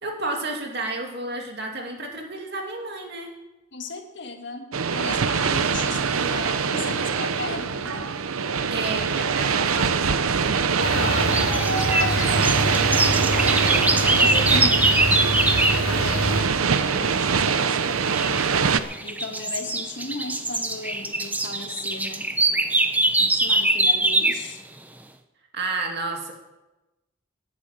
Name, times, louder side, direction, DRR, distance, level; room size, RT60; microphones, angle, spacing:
voice 1, 0.0-3.3 8.7-14.5 25.5-26.3, right 2 dB, 50° right, 1 dB, 2.4 m, -32 dB
voice 2, 3.7-8.1 9.4-9.6 14.2-22.3 23.2-24.6, left 3 dB, 55° left, 4 dB, 1.7 m, -36 dB
sound 1, 4.7-18.8, right 6 dB, 90° right, 0.7 m, -23 dB
sound 2, 10.8-16.4, equal, 80° left, 2.2 m, -26 dB
sound 3, 11.1-15.8 18.1-18.4 18.9-24.5, right 2 dB, 10° right, 0.6 m, -23 dB
11.5 x 9.5 x 8.9 m, 1.0 s
head